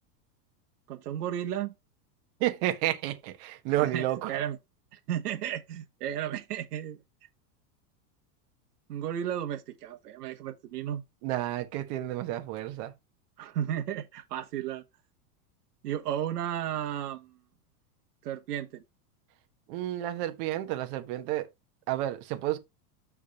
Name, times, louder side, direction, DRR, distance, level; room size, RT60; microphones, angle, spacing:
voice 1, 0.9-1.7 3.7-4.6 4.9-7.0 8.9-11.0 13.4-14.8 15.8-17.4 18.2-18.8, right 10 dB, 80° right, 1.3 m, -34 dB
voice 2, 2.4-4.4 11.2-12.9 19.7-21.5 21.9-22.6, right 14 dB, 45° right, 1.4 m, -31 dB
6.2 x 3.6 x 5.7 m
supercardioid pair, 150°, 46 cm